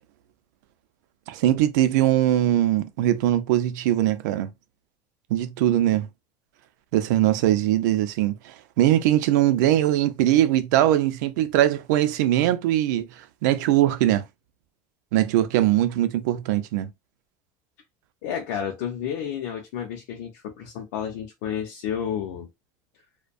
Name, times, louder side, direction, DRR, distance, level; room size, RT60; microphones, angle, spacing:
voice 1, 1.3-4.5 5.3-6.1 6.9-14.2 15.1-16.9, right 13 dB, 80° right, 0.4 m, -21 dB
voice 2, 18.2-22.5, left 8 dB, 65° left, 0.5 m, -31 dB
2.5 x 2.1 x 2.4 m
cardioid pair, 175°, 10 cm